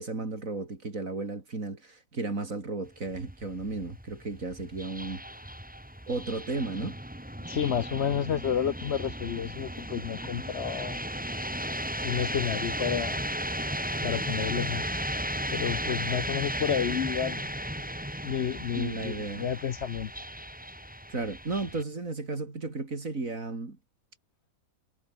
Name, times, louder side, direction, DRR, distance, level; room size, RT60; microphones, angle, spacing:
voice 1, 0.0-5.2 6.1-7.0 18.7-19.5 21.1-23.8, right 3 dB, 60° right, 3.9 m, -34 dB
sound 1, 2.9-21.8, equal, 5° right, 3.3 m, -35 dB
voice 2, 7.5-11.0 12.0-13.2 14.0-14.9 15.5-17.5 18.2-20.1, left 8 dB, 55° left, 0.9 m, -30 dB
omnidirectional pair, 1.6 m